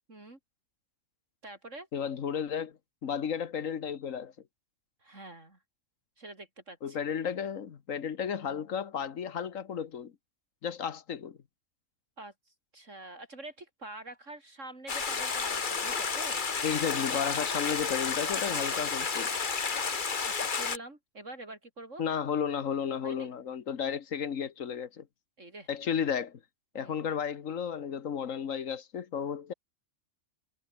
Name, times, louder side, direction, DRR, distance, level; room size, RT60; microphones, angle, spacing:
voice 1, 0.1-0.4 1.4-1.9 5.0-5.6 6.2-7.0 12.2-12.3 12.7-16.5 18.4-19.0 20.2-22.0 23.0-23.3 25.4-25.7 26.7-27.0, right 2 dB, 65° right, 5.1 m, -46 dB
voice 2, 1.9-4.3 6.8-10.1 10.6-11.4 16.6-19.3 22.0-25.1 25.7-26.4 26.7-29.5, left 7 dB, 75° left, 1.6 m, -33 dB
Stream, 14.9-20.8, left 5 dB, 40° left, 1.4 m, -31 dB
omnidirectional pair, 1.4 m